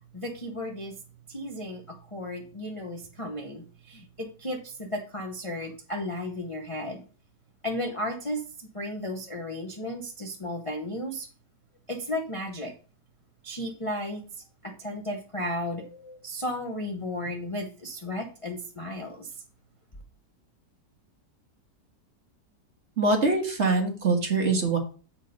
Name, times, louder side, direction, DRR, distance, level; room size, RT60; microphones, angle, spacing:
voice 1, 0.1-1.0 1.3-7.0 7.6-11.3 11.9-12.7 13.4-14.2 14.6-19.4, left 1 dB, 25° left, 1 dB, 0.7 m, -34 dB
voice 2, 23.0-24.8, right 3 dB, 40° right, 2 dB, 1.6 m, -23 dB
7.9 x 4.6 x 5.3 m, 0.37 s
omnidirectional pair, 1.9 m